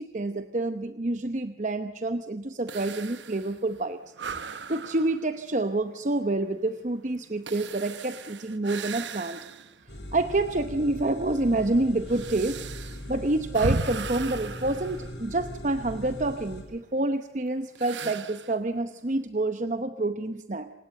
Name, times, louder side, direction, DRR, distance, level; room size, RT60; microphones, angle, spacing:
voice 1, 0.0-4.0 4.7-9.4 10.1-12.6 13.1-20.7, right 2 dB, 45° right, 9 dB, 0.8 m, -28 dB
sound 1, 2.7-9.9 10.3-10.4 11.2-15.8 17.8-18.6, right 4 dB, 90° right, 1.0 m, -37 dB
sound 2, 9.9-16.6, equal, 75° left, 5.4 m, -40 dB
26.5 x 19.5 x 7.6 m, 0.95 s
head